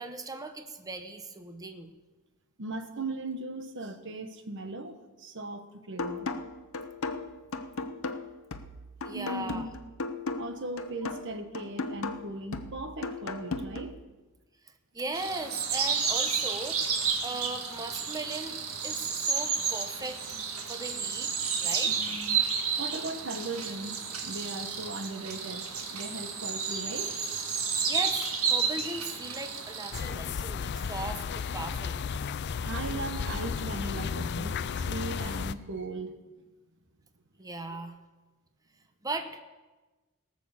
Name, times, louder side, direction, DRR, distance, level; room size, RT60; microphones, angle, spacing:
voice 1, 0.0-1.9 9.0-9.7 14.6-17.0 17.2-18.6 18.8-20.2 20.7-21.3 21.6-22.0 27.9-32.0 37.4-37.9 39.0-39.4, right 2 dB, 15° right, 7 dB, 0.9 m, -38 dB
voice 2, 2.6-6.3 9.1-9.7 10.4-14.0 21.9-22.5 22.8-27.1 32.6-36.1, right 2 dB, 60° right, 7 dB, 1.2 m, -38 dB
sound 1, 6.0-14.0, left 3 dB, 70° left, 0.8 m, -36 dB
sound 2, 15.1-30.0, right 6 dB, 85° right, 1.7 m, -31 dB
sound 3, 29.9-35.5, left 6 dB, 55° left, 0.4 m, -33 dB
18.0 x 6.4 x 7.2 m, 1.2 s
head